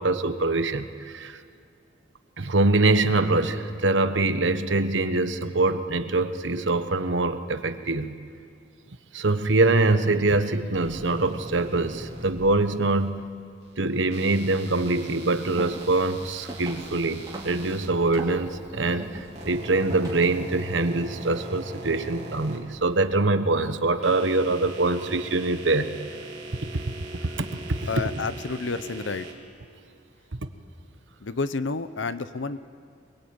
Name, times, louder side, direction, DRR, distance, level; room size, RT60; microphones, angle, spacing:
voice 1, 0.0-1.4 2.4-8.2 9.1-13.2 13.8-26.0 26.6-26.8 27.4-27.8 30.4-30.5, right 2 dB, 85° right, 9 dB, 1.2 m, -24 dB
sound 1, 10.7-13.1 14.1-17.9 18.9-23.2 23.8-29.3, right 1 dB, 35° right, 3.8 m, -41 dB
sound 2, 15.4-20.5, right 1 dB, 20° right, 3.8 m, -42 dB
voice 2, 27.9-29.3 31.2-32.6, left 4 dB, 90° left, 13 dB, 0.8 m, -30 dB
23.5 x 22.0 x 8.8 m, 2.2 s
head